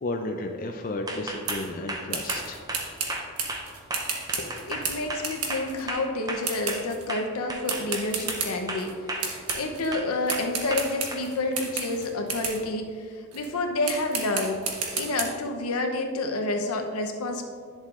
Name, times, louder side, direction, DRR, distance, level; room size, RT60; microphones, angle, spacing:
voice 1, 0.0-2.7, left 2 dB, 40° left, 3 dB, 0.4 m, -33 dB
sound 1, 1.1-6.8 7.1-8.4 8.7-9.6 9.9-11.2, right 2 dB, 15° right, 0.6 m, -34 dB
sound 2, 1.5-1.7 2.1-5.8 6.4-7.1 7.7-8.9 9.2-9.9 10.3-12.6 13.3-13.5 13.8-15.2, right 5 dB, 85° right, 1.3 m, -32 dB
voice 2, 4.4-12.9 13.3-14.6 14.9-17.4, left 2 dB, 80° left, 3 dB, 0.8 m, -29 dB
10.5 x 7.3 x 2.5 m, 2.2 s
head